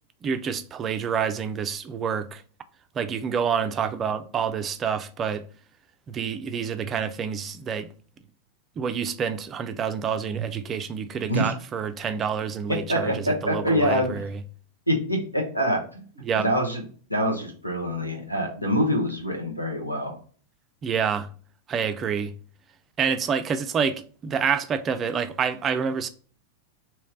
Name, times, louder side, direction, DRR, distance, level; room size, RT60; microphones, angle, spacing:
voice 1, 0.2-2.4 2.9-5.4 6.1-7.9 8.8-14.4 16.2-16.5 20.8-21.3 21.7-22.3 23.0-26.1, right 7 dB, 25° right, 0.4 m, -28 dB
voice 2, 12.9-14.1 14.9-16.0 16.3-16.8 17.1-20.1, equal, 90° left, 1.0 m, -25 dB
3.2 x 3.0 x 3.7 m
figure-of-eight pair, 90°, 0 cm